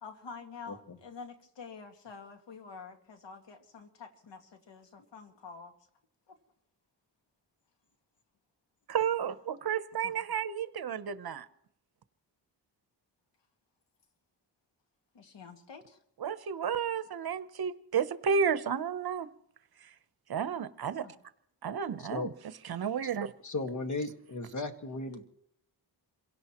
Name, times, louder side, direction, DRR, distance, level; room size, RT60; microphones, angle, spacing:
voice 1, 0.0-5.7 6.3-6.4 10.0-10.1 15.1-16.0 21.0-21.1, left 5 dB, 85° left, 5 dB, 2.1 m, -48 dB
voice 2, 8.9-11.4 16.2-19.3 19.8-19.9 20.3-21.0 21.6-22.3 22.6-23.3, right 7 dB, 60° right, 13 dB, 0.9 m, -32 dB
voice 3, 22.0-22.3 23.0-23.1 23.4-25.2, left 2 dB, 45° left, 6 dB, 1.8 m, -36 dB
27.5 x 17.0 x 3.0 m, 0.74 s
cardioid pair, 90°, 42 cm